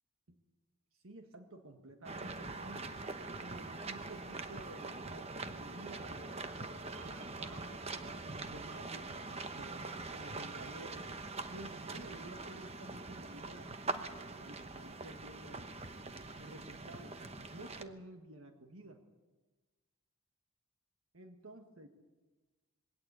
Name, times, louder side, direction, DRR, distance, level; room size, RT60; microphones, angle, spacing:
voice 1, 1.0-3.0 3.4-6.4 6.9-11.1 11.5-15.7 16.4-17.2 17.5-19.0 21.1-21.9, right 1 dB, 70° right, 5 dB, 1.6 m, -52 dB
sound 1, 2.0-17.8, right 3 dB, 30° right, 1.0 m, -43 dB
21.0 x 17.5 x 8.2 m, 1.2 s
head